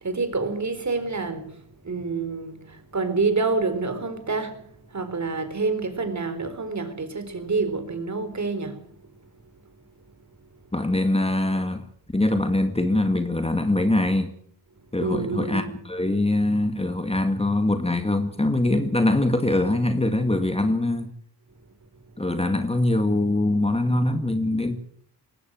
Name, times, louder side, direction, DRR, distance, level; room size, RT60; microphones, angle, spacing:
voice 1, 0.0-8.9 15.0-15.7, right 4 dB, 45° right, 4.2 m, -28 dB
voice 2, 10.7-11.8 12.1-14.3 14.9-21.1 22.2-24.8, left 2 dB, 15° left, 2.0 m, -23 dB
20.0 x 17.0 x 7.9 m
cardioid pair, 80°, 41 cm